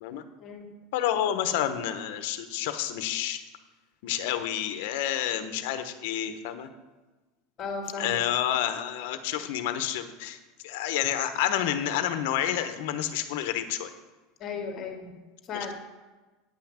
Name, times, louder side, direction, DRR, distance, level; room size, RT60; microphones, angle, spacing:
voice 1, 0.9-3.4 4.0-6.7 8.0-13.9 15.5-15.7, left 11 dB, 70° left, 9 dB, 1.0 m, -29 dB
voice 2, 7.6-8.2 14.4-15.1 15.4-15.7, left 4 dB, 35° left, 3 dB, 2.0 m, -35 dB
9.6 x 5.8 x 7.4 m, 1.2 s
supercardioid pair, 145°, 0 cm